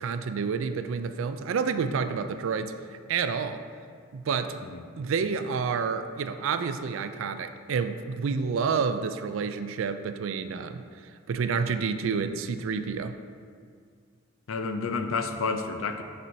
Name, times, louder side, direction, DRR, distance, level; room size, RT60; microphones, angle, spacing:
voice 1, 0.0-2.7 3.1-3.6 4.1-4.6 5.0-10.8 11.3-13.2, right 5 dB, 70° right, 10 dB, 0.4 m, -29 dB
voice 2, 14.5-16.0, left 4 dB, 75° left, 7 dB, 0.5 m, -30 dB
10.5 x 4.4 x 2.7 m, 2.1 s
head